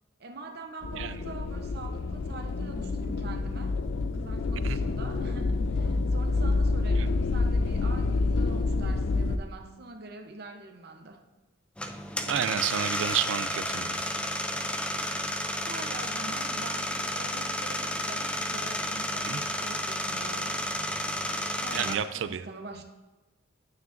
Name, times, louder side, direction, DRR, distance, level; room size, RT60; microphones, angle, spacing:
voice 1, 0.2-3.8 4.1-11.2 15.5-20.7 21.3-22.8, right 3 dB, 55° right, 0.8 m, -44 dB
sound 1, 0.8-9.4, left 3 dB, 70° left, 0.4 m, -28 dB
sound 2, 11.8-22.0, left 1 dB, 5° left, 0.4 m, -32 dB
voice 2, 12.3-14.1 19.2-19.4 21.7-22.4, right 9 dB, 75° right, 0.4 m, -30 dB
9.4 x 9.1 x 2.6 m
head